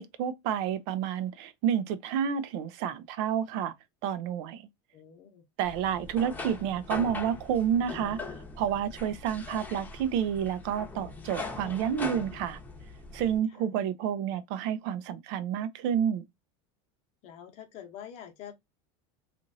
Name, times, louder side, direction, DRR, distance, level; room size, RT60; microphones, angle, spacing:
voice 1, 0.0-3.7 4.0-4.6 5.6-8.2 8.6-12.6 13.1-16.2, right 9 dB, 60° right, 0.5 m, -29 dB
voice 2, 4.9-5.4 5.7-5.8 13.5-13.8 17.2-18.5, left 9 dB, 50° left, 0.9 m, -46 dB
sound 1, 5.6-13.4, left 3 dB, 10° left, 0.8 m, -41 dB
2.9 x 2.5 x 2.6 m
supercardioid pair, 135°, 15 cm